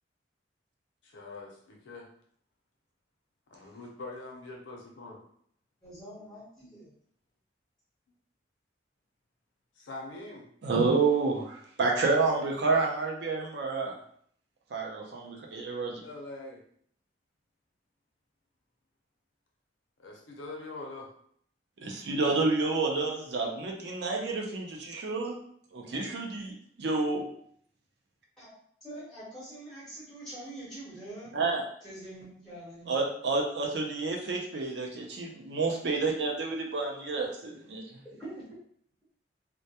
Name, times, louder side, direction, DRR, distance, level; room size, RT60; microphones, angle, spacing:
voice 1, 1.0-2.1 3.5-5.2 9.8-10.5 12.3-12.4 16.0-16.6 20.0-21.1, left 2 dB, 90° left, -1 dB, 0.6 m, -43 dB
voice 2, 5.8-6.9 28.4-28.5 28.8-31.3 31.8-33.0 38.2-38.5, right 1 dB, 5° left, -10 dB, 1.1 m, -44 dB
voice 3, 10.6-13.9 14.7-16.0 21.8-25.4 25.7-27.3 31.3-31.6 32.9-37.8, right 3 dB, 65° right, 0 dB, 0.5 m, -29 dB
2.2 x 2.1 x 2.7 m, 0.64 s
head